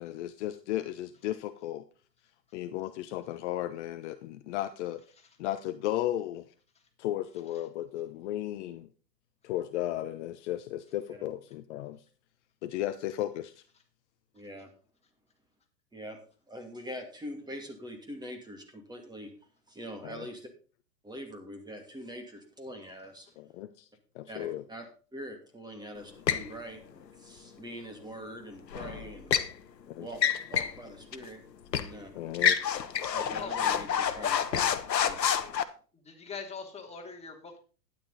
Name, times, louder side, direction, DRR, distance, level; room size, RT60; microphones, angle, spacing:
voice 1, 0.0-1.8 2.5-5.0 5.4-6.5 7.0-8.9 9.4-12.0 12.6-13.6 20.0-20.3 23.4-23.9 24.1-24.6 29.9-30.1 32.1-32.6, left 13 dB, 45° left, 10 dB, 0.9 m, -35 dB
voice 2, 14.3-14.7 15.9-16.2 16.5-19.3 19.7-20.5 21.0-23.3 24.3-24.8 25.1-29.3 30.0-30.2 30.5-31.4 31.7-32.1 33.1-34.6 35.0-35.2, equal, 10° right, 4 dB, 2.6 m, -43 dB
sound 1, 26.3-26.5 28.7-29.5 30.1-30.8 31.1-31.2 31.7-31.9 32.3-35.6, left 8 dB, 80° left, 1.2 m, -28 dB
voice 3, 36.0-37.6, left 5 dB, 15° left, 1 dB, 2.8 m, -41 dB
12.0 x 10.0 x 4.1 m, 0.37 s
hypercardioid pair, 110°, 49 cm